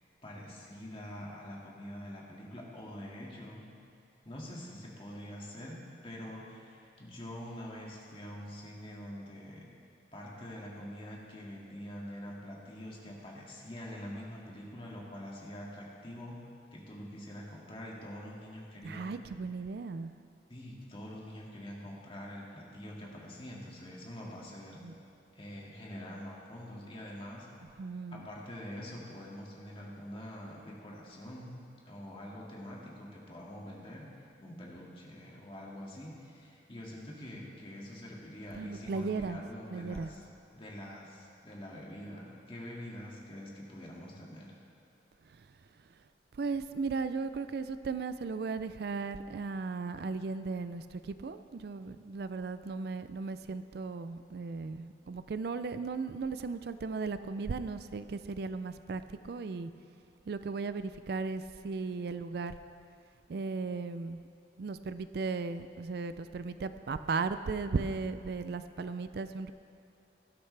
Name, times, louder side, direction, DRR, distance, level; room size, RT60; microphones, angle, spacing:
voice 1, 0.2-3.6 4.2-9.7 10.1-19.1 20.5-24.8 25.3-27.5 28.1-40.2 40.5-44.6, equal, 30° left, -3 dB, 2.1 m, -45 dB
voice 2, 18.8-20.1 24.8-24.9 27.8-28.3 38.6-39.4 39.7-40.1 45.2-45.6 45.9-46.0 46.3-59.7 60.3-62.5 63.3-64.2 64.6-69.5, right 4 dB, 60° right, 11 dB, 0.4 m, -36 dB
17.5 x 12.0 x 3.3 m, 2.5 s
head